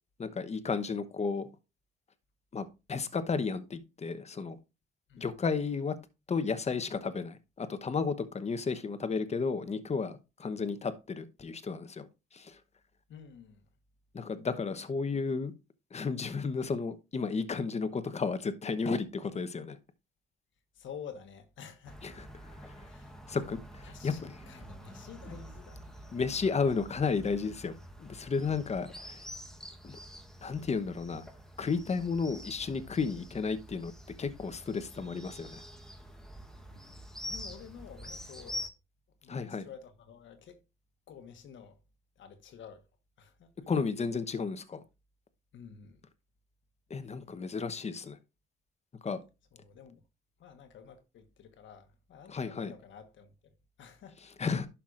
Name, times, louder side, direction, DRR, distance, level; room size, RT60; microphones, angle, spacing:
voice 1, 0.2-1.5 2.5-4.6 5.2-6.0 6.3-12.6 14.1-15.5 15.9-19.8 22.0-22.1 22.5-22.9 23.3-24.3 25.3-25.4 26.1-27.7 28.0-29.2 29.8-30.0 30.4-31.2 31.6-33.9 34.2-35.6 39.3-39.7 43.7-44.8 46.9-48.2 49.0-49.2 52.3-52.7 54.4-54.7, left 5 dB, 35° left, 1.0 m, -33 dB
voice 2, 13.1-13.7 20.7-22.1 22.9-23.2 23.8-26.7 36.7-38.7 39.2-40.6 41.1-41.8 42.2-42.9 43.2-43.6 45.5-46.0 47.0-47.1 49.5-50.0 50.4-54.3, left 7 dB, 75° left, 1.3 m, -50 dB
sound 1, 21.8-38.7, equal, 5° left, 1.1 m, -47 dB
11.5 x 5.7 x 2.5 m
cardioid pair, 90°, 20 cm